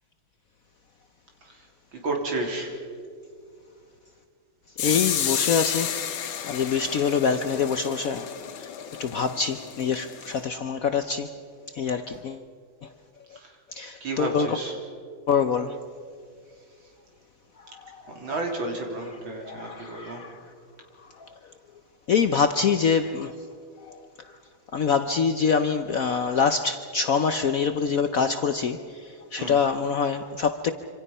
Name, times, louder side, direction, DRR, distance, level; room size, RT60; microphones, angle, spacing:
voice 1, 1.9-2.8 13.4-13.5 14.0-14.8 18.1-20.2 29.4-29.6, right 2 dB, 75° right, 1 dB, 4.2 m, -31 dB
sound 1, 4.8-10.4, left 9 dB, 80° left, 1.9 m, -31 dB
voice 2, 4.8-6.0 6.4-8.3 8.6-8.7 9.0-11.3 11.8-12.4 13.7-14.6 15.3-15.7 19.3-20.3 22.1-23.3 24.7-28.8 29.3-30.7, left 6 dB, 60° left, 9 dB, 0.9 m, -25 dB
26.5 x 26.5 x 5.5 m, 2.2 s
omnidirectional pair, 2.2 m